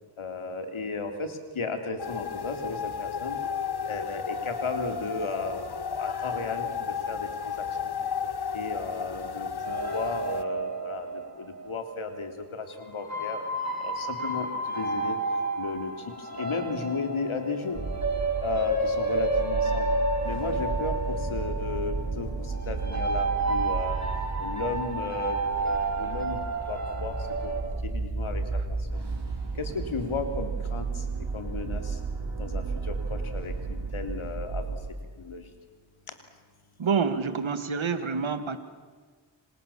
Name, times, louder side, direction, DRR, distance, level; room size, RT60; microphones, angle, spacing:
voice 1, 0.2-3.4 3.8-7.9 8.5-13.4 13.8-15.2 15.6-15.9 16.2-17.8 18.4-19.9 20.2-24.0 24.4-26.4 26.7-27.2 27.4-28.6 28.9-29.0 29.5-31.0 31.3-32.0 32.4-34.6 35.2-35.5, left 4 dB, 85° left, 6 dB, 3.3 m, -34 dB
sound 1, 2.0-10.4, left 6 dB, 55° left, 1.3 m, -33 dB
sound 2, 9.6-12.2 12.9-27.6, right 2 dB, 35° right, 8.0 m, -31 dB
sound 3, 17.7-34.7, right 4 dB, 55° right, 5.7 m, -33 dB
voice 2, 36.8-38.6, right 5 dB, 75° right, 10 dB, 2.1 m, -27 dB
28.5 x 26.0 x 7.3 m, 1.5 s
cardioid pair, 55°, 48 cm